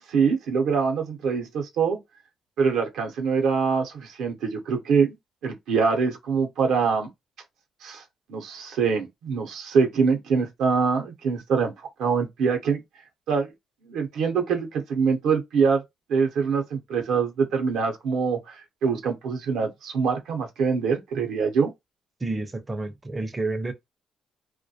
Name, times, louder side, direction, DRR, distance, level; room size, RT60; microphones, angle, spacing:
voice 1, 0.0-2.0 2.6-5.2 5.4-7.1 7.8-8.0 8.3-11.7 12.0-12.8 13.3-13.5 13.9-15.8 16.1-21.7, right 5 dB, 85° right, 0.6 m, -24 dB
voice 2, 22.2-23.7, right 2 dB, 20° right, 0.4 m, -30 dB
2.2 x 2.1 x 2.7 m
cardioid pair, 90°, 0 cm